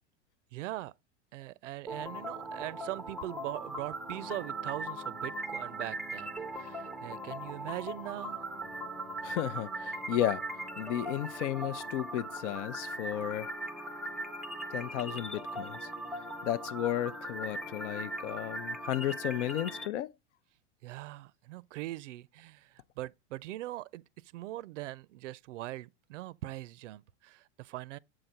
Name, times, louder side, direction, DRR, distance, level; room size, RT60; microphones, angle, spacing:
voice 1, 0.5-0.9 1.3-8.4 20.8-28.0, right 16 dB, 90° right, 0.5 m, -41 dB
sound 1, 1.9-19.9, right 1 dB, ahead, 0.4 m, -39 dB
voice 2, 9.2-10.4 10.8-13.5 14.7-15.9 16.4-20.1, left 12 dB, 80° left, 0.6 m, -33 dB
7.7 x 4.0 x 4.4 m
supercardioid pair, 130°, 36 cm